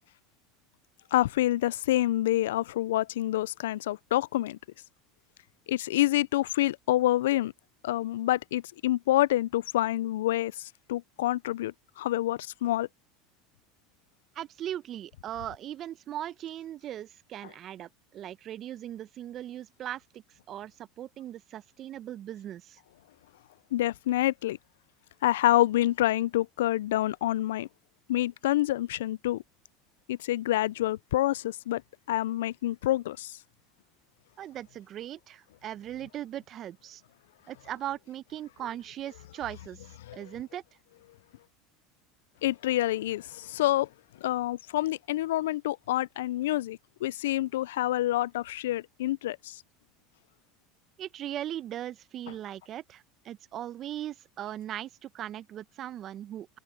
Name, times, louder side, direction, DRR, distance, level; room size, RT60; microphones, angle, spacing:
voice 1, 1.1-4.6 5.7-7.5 7.8-10.5 10.9-12.9 23.7-24.6 25.2-27.7 28.1-29.4 30.1-31.8 32.1-33.3 40.0-40.2 42.4-43.9 44.2-49.6, left 15 dB, 80° left, 0.3 m, -27 dB
voice 2, 14.3-20.2 20.5-22.8 34.4-37.0 37.5-39.8 40.1-40.6 51.0-56.5, right 11 dB, 45° right, 1.0 m, -39 dB
open air
hypercardioid pair, 90°, 0 cm